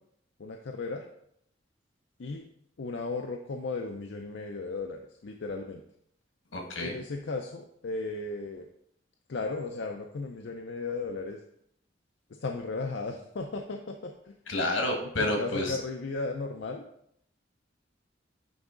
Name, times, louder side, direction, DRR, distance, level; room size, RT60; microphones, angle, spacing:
voice 1, 0.4-1.1 2.2-2.4 2.8-5.8 6.8-8.7 9.3-11.4 12.3-14.4 15.2-16.8, left 3 dB, 60° left, 3 dB, 0.5 m, -35 dB
voice 2, 6.5-6.9 14.5-15.8, left 1 dB, 80° left, 2 dB, 1.5 m, -29 dB
9.3 x 3.5 x 3.7 m, 0.71 s
head